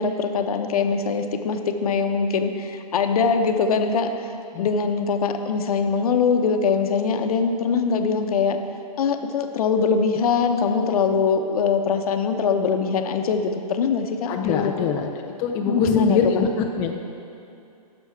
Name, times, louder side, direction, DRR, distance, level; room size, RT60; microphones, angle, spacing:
voice 1, 0.0-4.3 4.6-8.6 9.0-14.9 15.7-16.2, left 5 dB, 65° left, 6 dB, 0.8 m, -22 dB
voice 2, 14.3-16.9, left 6 dB, 15° left, 2 dB, 0.3 m, -24 dB
11.5 x 6.1 x 4.6 m, 2.7 s
hypercardioid pair, 145°, 21 cm